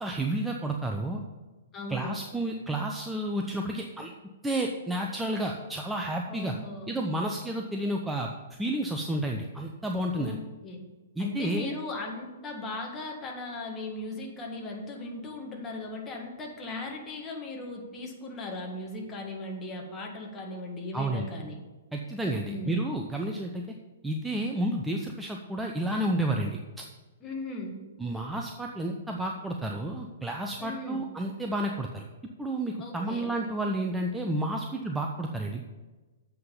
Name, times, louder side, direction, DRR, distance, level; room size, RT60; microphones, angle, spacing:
voice 1, 0.0-1.2 1.9-4.1 4.4-6.6 6.9-8.3 8.6-10.4 11.2-11.8 20.9-21.3 21.9-23.6 24.0-26.6 28.0-32.0 32.4-35.6, right 1 dB, 5° right, 1 dB, 0.6 m, -31 dB
voice 2, 1.7-2.1 6.3-7.0 10.2-10.8 11.2-21.6 22.4-22.7 27.2-27.8 30.6-31.1 32.8-33.3, left 2 dB, 20° left, 0 dB, 1.8 m, -38 dB
7.6 x 5.8 x 7.0 m, 1.2 s
figure-of-eight pair, 115°, 0 cm